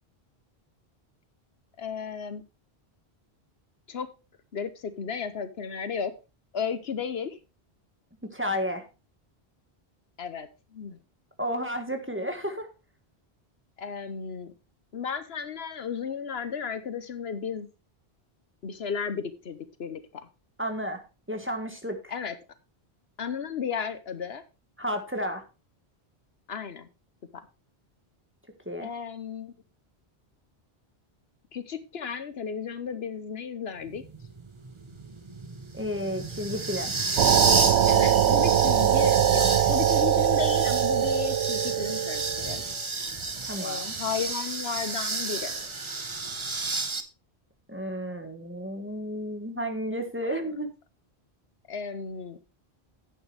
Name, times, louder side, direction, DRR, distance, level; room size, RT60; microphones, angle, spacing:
voice 1, 1.8-2.4 3.9-4.1 4.5-6.1 6.5-7.4 10.2-11.0 13.8-14.5 14.9-17.7 18.6-20.3 22.1-22.4 23.2-24.4 26.5-26.9 27.3-27.5 28.8-29.5 31.5-34.0 37.8-42.6 43.6-45.5 50.2-50.5 51.7-52.4, left 6 dB, 70° left, 12 dB, 1.2 m, -34 dB
voice 2, 8.2-8.8 11.4-12.7 20.6-21.0 21.3-22.1 24.8-25.4 28.6-28.9 35.7-36.9 43.4-43.9 47.7-50.7, equal, 10° right, 5 dB, 1.6 m, -32 dB
sound 1, 33.9-47.0, right 3 dB, 30° right, 0.9 m, -31 dB
sound 2, 37.2-42.6, right 11 dB, 90° right, 0.9 m, -22 dB
11.0 x 8.8 x 3.4 m, 0.29 s
omnidirectional pair, 1.1 m